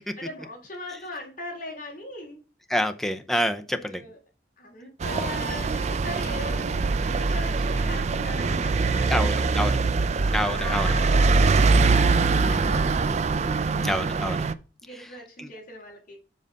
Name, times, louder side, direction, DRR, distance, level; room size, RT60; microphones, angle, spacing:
voice 1, 0.0-2.4 3.8-4.2 4.6-9.9 10.5-13.2 14.8-16.2, left 2 dB, 50° left, -1 dB, 3.0 m, -39 dB
voice 2, 2.7-4.0 9.1-9.8 10.3-10.9 13.8-14.4 15.4-15.5, equal, ahead, 6 dB, 0.6 m, -27 dB
sound 1, 5.0-14.5, right 4 dB, 40° right, 0.4 m, -23 dB
7.5 x 4.0 x 5.1 m, 0.34 s
head